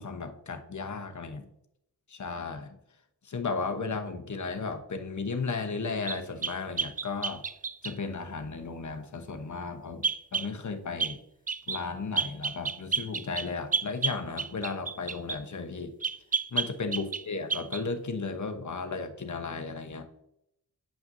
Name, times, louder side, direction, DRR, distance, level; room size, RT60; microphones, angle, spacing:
voice 1, 0.0-1.5 2.1-2.8 3.2-7.4 7.8-11.2 11.7-15.9 16.5-20.1, left 4 dB, 45° left, 6 dB, 1.0 m, -35 dB
sound 1, 6.1-8.0 10.0-10.5 11.0-11.2 11.5-11.8 12.2-15.4 16.0-17.2 17.5-17.8, right 5 dB, 20° right, 0.4 m, -31 dB
8.8 x 5.8 x 2.7 m, 0.79 s
cardioid pair, 50°, 40 cm